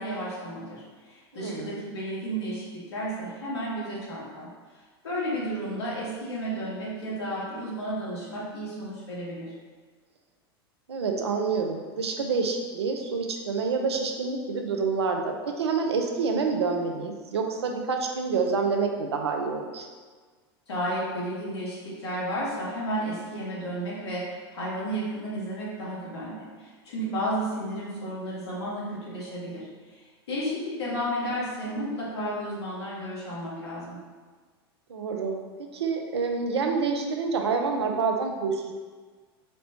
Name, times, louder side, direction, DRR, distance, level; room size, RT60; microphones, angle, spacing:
voice 1, 0.0-4.5 5.0-9.5 20.7-34.0, equal, 80° left, -6 dB, 1.3 m, -32 dB
voice 2, 1.3-1.8 10.9-19.9 34.9-35.4 35.7-38.7, right 4 dB, 90° right, 3 dB, 0.5 m, -27 dB
4.2 x 2.1 x 2.8 m, 1.5 s
hypercardioid pair, 100°, 13 cm